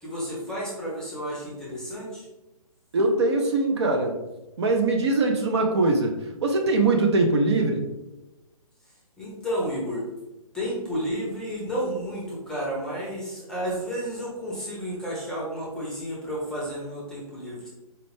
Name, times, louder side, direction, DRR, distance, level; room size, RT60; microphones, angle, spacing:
voice 1, 0.0-2.3 8.8-10.0 10.5-17.7, equal, 5° left, -4 dB, 0.7 m, -32 dB
voice 2, 2.9-4.2 4.6-7.9, right 2 dB, 45° right, 2 dB, 0.5 m, -22 dB
4.3 x 2.4 x 3.2 m, 0.99 s
figure-of-eight pair, 135°, 19 cm